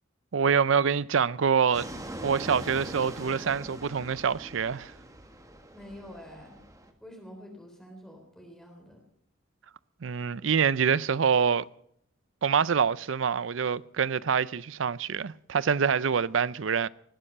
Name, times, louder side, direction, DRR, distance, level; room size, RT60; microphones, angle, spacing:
voice 1, 0.3-1.9 2.2-4.9 10.0-11.6 12.4-16.9, right 6 dB, 70° right, 0.5 m, -25 dB
Fixed-wing aircraft airplane, 1.7-6.9, right 1 dB, 15° right, 1.7 m, -42 dB
voice 2, 5.7-6.6 7.0-9.0, equal, 5° left, 3.6 m, -47 dB
19.5 x 10.0 x 6.7 m
head